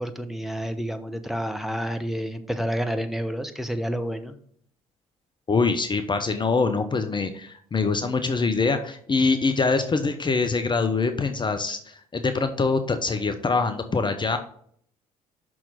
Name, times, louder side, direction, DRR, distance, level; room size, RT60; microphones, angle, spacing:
voice 1, 0.0-4.3, equal, ahead, 7 dB, 1.0 m, -29 dB
voice 2, 5.5-14.4, left 4 dB, 25° left, 8 dB, 0.8 m, -24 dB
6.2 x 6.0 x 5.1 m, 0.62 s
figure-of-eight pair, 50°, 19 cm